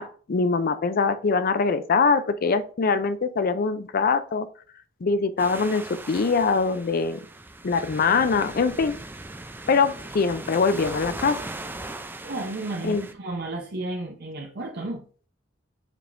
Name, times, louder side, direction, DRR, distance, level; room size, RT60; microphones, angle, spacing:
voice 1, 0.0-4.5 5.0-7.2 7.6-9.0 9.7-11.4 12.8-13.0, left 4 dB, 50° left, 12 dB, 0.5 m, -23 dB
sound 1, 5.4-13.1, right 2 dB, 10° right, 0.5 m, -39 dB
voice 2, 12.2-15.0, right 2 dB, 55° right, 0 dB, 0.8 m, -32 dB
7.3 x 5.1 x 2.6 m, 0.42 s
head